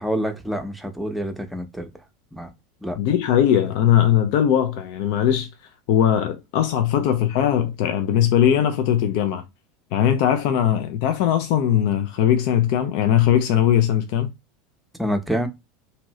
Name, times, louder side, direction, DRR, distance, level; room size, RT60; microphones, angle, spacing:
voice 1, 0.0-1.9 2.3-2.5 2.8-3.0 15.0-15.5, equal, 5° right, 0.7 m, -27 dB
voice 2, 3.0-5.5 5.9-9.4 9.9-14.3, left 10 dB, 65° left, 0.4 m, -20 dB
2.7 x 2.5 x 3.0 m
hypercardioid pair, 85°, 0 cm